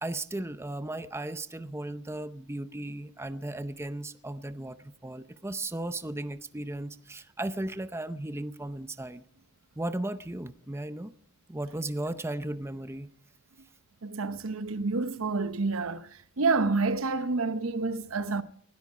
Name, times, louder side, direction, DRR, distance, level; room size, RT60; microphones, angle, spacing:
voice 1, 0.0-9.2 9.8-11.1 11.5-13.1, right 1 dB, 10° right, 0.6 m, -36 dB
voice 2, 14.0-18.4, right 3 dB, 70° right, 0.9 m, -28 dB
19.5 x 13.0 x 4.9 m
head